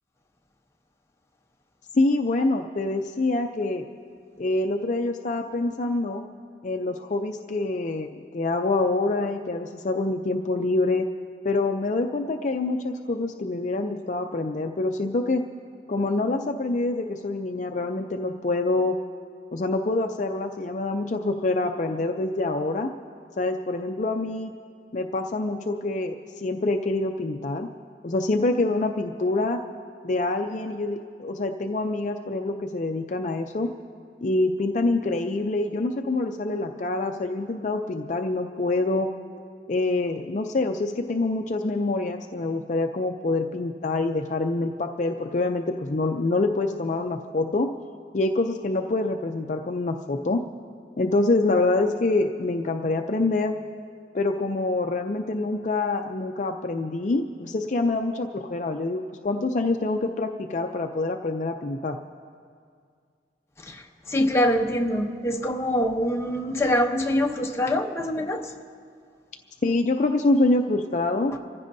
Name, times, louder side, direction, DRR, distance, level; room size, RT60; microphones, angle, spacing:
voice 1, 1.9-3.9 4.4-6.3 6.6-11.1 11.4-15.4 15.9-19.0 19.5-22.9 23.4-24.5 24.9-27.7 28.0-29.6 30.0-33.7 34.2-39.1 39.7-47.7 48.1-50.4 51.0-53.5 54.1-62.0 69.6-71.3, left 2 dB, 45° left, 5 dB, 0.5 m, -26 dB
voice 2, 64.1-68.5, left 1 dB, 15° left, 2 dB, 0.8 m, -24 dB
26.5 x 15.0 x 2.7 m, 2.2 s
head